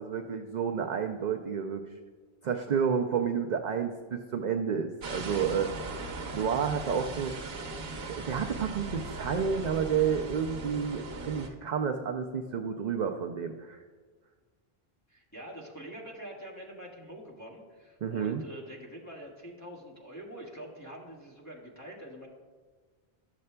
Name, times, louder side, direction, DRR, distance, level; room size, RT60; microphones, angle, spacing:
voice 1, 0.0-1.8 2.4-5.7 6.3-7.4 8.1-13.8 18.0-18.4, right 7 dB, 55° right, 3 dB, 0.5 m, -30 dB
sound 1, 5.0-11.5, right 3 dB, 70° right, 1.0 m, -39 dB
voice 2, 15.1-22.3, right 1 dB, 15° left, -4 dB, 1.5 m, -45 dB
12.0 x 6.6 x 2.2 m, 1.5 s
omnidirectional pair, 1.1 m